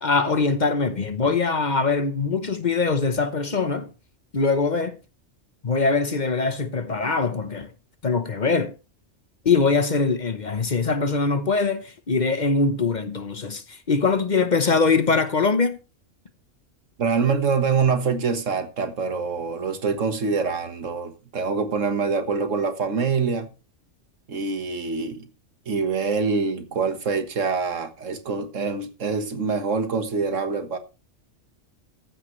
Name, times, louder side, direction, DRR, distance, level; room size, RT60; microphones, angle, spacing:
voice 1, 0.0-3.9 4.3-5.0 5.6-7.7 8.0-8.7 9.4-15.8, left 4 dB, 40° left, 1.0 m, -22 dB
voice 2, 17.0-23.5 24.3-25.3 25.7-30.8, right 5 dB, 85° right, 1.8 m, -25 dB
14.5 x 10.0 x 3.2 m
omnidirectional pair, 1.3 m